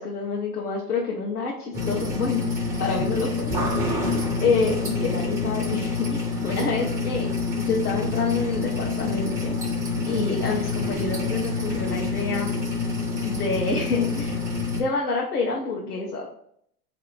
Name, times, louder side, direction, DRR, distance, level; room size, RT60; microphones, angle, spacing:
voice 1, 0.0-2.4 2.8-3.5 4.4-7.3 7.6-9.5 10.1-12.6 13.2-14.4 14.7-16.3, left 4 dB, 80° left, -3 dB, 1.0 m, -27 dB
sound 1, 1.7-14.8, left 4 dB, 5° right, 0.4 m, -27 dB
4.3 x 2.8 x 4.0 m, 0.68 s
hypercardioid pair, 105°, 46 cm